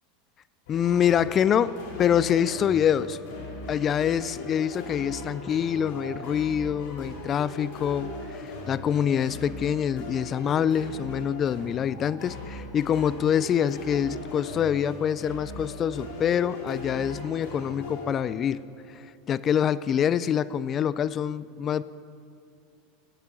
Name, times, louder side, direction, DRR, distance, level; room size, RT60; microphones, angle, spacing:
sound 1, 0.7-18.8, left 2 dB, 70° left, 2.3 m, -39 dB
voice 1, 0.7-3.2 3.7-18.6 18.9-21.8, left 9 dB, 35° left, 18 dB, 0.3 m, -25 dB
8.6 x 8.0 x 7.0 m, 2.3 s
hypercardioid pair, 105°, 0 cm